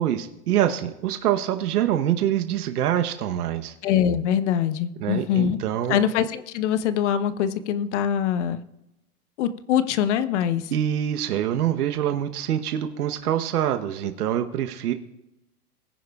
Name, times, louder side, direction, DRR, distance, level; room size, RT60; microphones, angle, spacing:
voice 1, 0.0-3.7 5.0-6.1 10.7-14.9, right 11 dB, 75° right, 7 dB, 1.1 m, -25 dB
voice 2, 3.8-5.6 5.9-8.6 9.4-10.7, left 9 dB, 50° left, 13 dB, 0.9 m, -23 dB
21.0 x 9.7 x 2.4 m, 0.91 s
hypercardioid pair, 140°, 46 cm